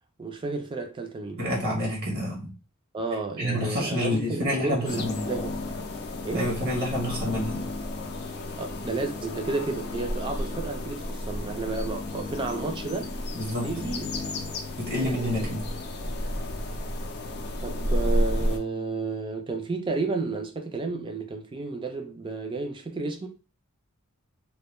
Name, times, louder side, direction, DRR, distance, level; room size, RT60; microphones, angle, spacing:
voice 1, 0.2-1.4 2.9-5.0 5.3-5.9 6.2-6.5 8.6-13.1 13.6-14.3 14.9-15.5 17.6-23.3, right 3 dB, 20° right, 0.4 m, -32 dB
voice 2, 1.4-2.5 3.4-5.2 6.3-7.7 13.3-13.7 14.8-15.7, left 1 dB, 45° right, 0.7 m, -28 dB
sound 1, 4.9-18.6, left 1 dB, 45° left, 0.4 m, -32 dB
2.2 x 2.1 x 3.0 m
head